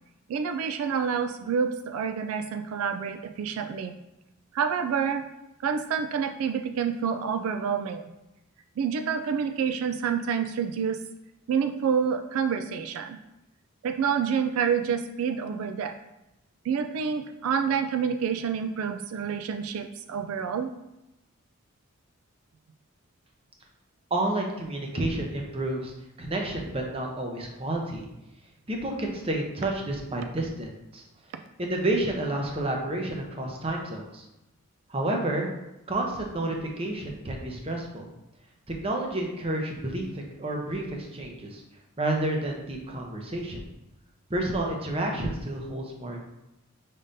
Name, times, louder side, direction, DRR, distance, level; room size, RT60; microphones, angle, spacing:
voice 1, 0.3-4.0 4.5-5.2 5.6-8.1 8.8-11.0 11.5-13.2 13.8-15.9 16.6-20.7, right 6 dB, 80° right, 8 dB, 0.3 m, -28 dB
voice 2, 24.1-25.9 26.2-28.1 28.7-31.0 31.6-34.2 34.9-35.5 35.9-38.1 38.8-41.6 42.0-43.6 44.3-46.2, right 1 dB, 25° right, 1 dB, 0.7 m, -30 dB
5.4 x 3.6 x 2.6 m, 0.93 s
head